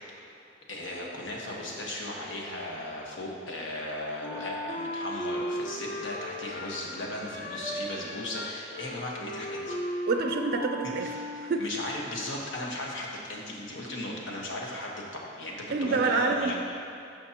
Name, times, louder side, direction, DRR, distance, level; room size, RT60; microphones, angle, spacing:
voice 1, 0.7-9.8 11.0-16.5, left 1 dB, 85° left, -2 dB, 1.3 m, -36 dB
Wind instrument woodwind instrument, 4.2-11.8, equal, 50° left, 0.9 m, -36 dB
voice 2, 10.1-11.1 11.4-11.6 15.7-16.5, right 4 dB, 50° right, 5 dB, 0.4 m, -27 dB
12.5 x 5.3 x 2.9 m, 2.7 s
head